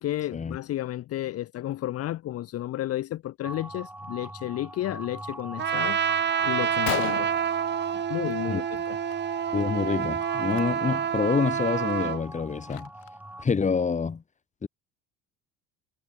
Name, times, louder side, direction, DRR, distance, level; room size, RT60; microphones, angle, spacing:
voice 1, 0.0-6.0 6.4-7.3 8.1-9.0, left 13 dB, 45° left, 1.6 m, -32 dB
sound 1, 3.4-13.4, right 1 dB, 5° right, 2.8 m, -42 dB
Trumpet, 5.6-12.2, right 8 dB, 30° right, 4.3 m, -28 dB
Gunshot gunfire, 6.2-6.3 6.6-6.7 6.9-8.5 8.8-9.1 9.4-9.6 10.4-10.6 11.1-11.2 11.7-13.3, left 29 dB, 85° left, 6.5 m, -36 dB
voice 2, 9.5-12.9 13.4-14.2 14.6-14.7, left 5 dB, 20° left, 6.2 m, -27 dB
cardioid pair, 140°, 33 cm